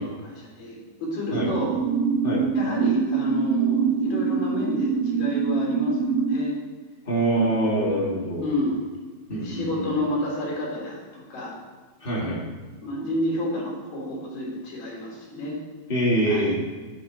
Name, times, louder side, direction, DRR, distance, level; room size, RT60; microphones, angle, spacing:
voice 1, 0.0-1.8 2.5-6.6 7.3-8.1 8.4-9.0 9.4-11.6 12.8-15.6 16.2-16.4, left 1 dB, 50° left, -4 dB, 4.9 m, -30 dB
sound 1, 1.4-6.4, right 6 dB, 80° right, 3.6 m, -24 dB
voice 2, 7.0-8.5 9.3-9.9 12.0-12.4 15.9-16.5, right 1 dB, 30° left, -5 dB, 1.0 m, -24 dB
11.5 x 11.0 x 4.2 m, 1.4 s
omnidirectional pair, 5.5 m